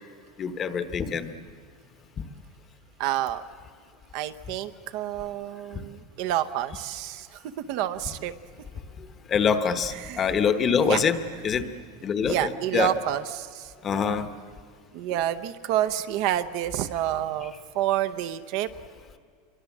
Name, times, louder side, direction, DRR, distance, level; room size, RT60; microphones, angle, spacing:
voice 1, 0.4-1.3 9.3-11.1 11.4-11.6 12.0-12.3 12.7-12.9 13.8-14.3, left 6 dB, 20° left, 10 dB, 1.0 m, -24 dB
voice 2, 3.0-3.4 4.1-8.3 9.9-10.2 10.7-11.1 11.3-11.4 12.2-14.2 14.9-18.7, right 12 dB, 45° right, 11 dB, 0.8 m, -29 dB
26.0 x 23.0 x 7.3 m, 2.1 s
supercardioid pair, 175°, 0 cm